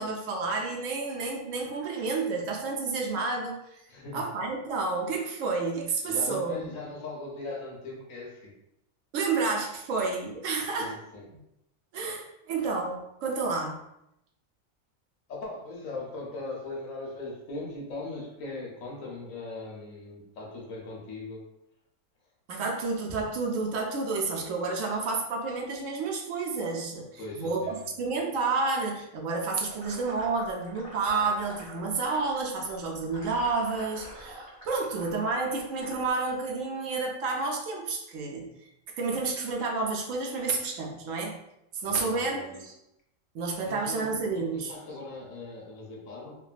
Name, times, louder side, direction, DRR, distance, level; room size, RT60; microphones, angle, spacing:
voice 1, 0.0-3.8 4.1-6.6 9.1-10.9 11.9-13.8 22.5-38.5 39.0-41.4 41.7-42.7 43.3-44.7, right 4 dB, 75° right, 0 dB, 0.9 m, -30 dB
voice 2, 3.9-4.3 6.0-8.6 10.8-11.3 15.3-21.5 27.2-27.9 41.8-42.6 43.6-44.1 44.3-46.4, left 2 dB, 80° left, -2 dB, 1.1 m, -39 dB
sound 1, 29.6-36.1, right 1 dB, 15° right, 1.0 m, -46 dB
3.3 x 2.2 x 2.3 m, 0.82 s
omnidirectional pair, 1.4 m